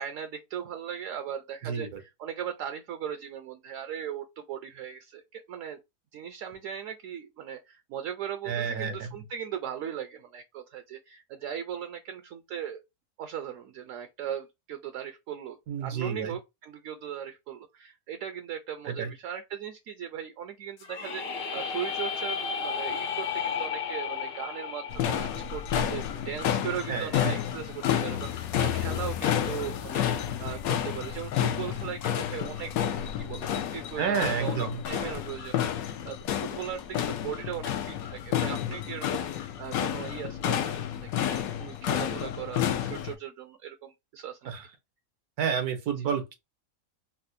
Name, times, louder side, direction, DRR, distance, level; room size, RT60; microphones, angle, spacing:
voice 1, 0.0-5.8 6.1-12.8 13.2-44.5 46.0-46.1, right 9 dB, 70° right, 0.9 m, -38 dB
voice 2, 1.6-2.0 8.5-9.1 15.7-16.4 18.9-19.1 26.9-27.3 34.0-34.8 44.4-44.7 45.4-46.3, right 7 dB, 85° right, 1.4 m, -30 dB
sound 1, 20.8-26.7, left 6 dB, 55° left, 0.7 m, -34 dB
sound 2, 24.9-43.1, left 10 dB, 75° left, 1.0 m, -30 dB
4.1 x 2.1 x 2.6 m
omnidirectional pair, 1.5 m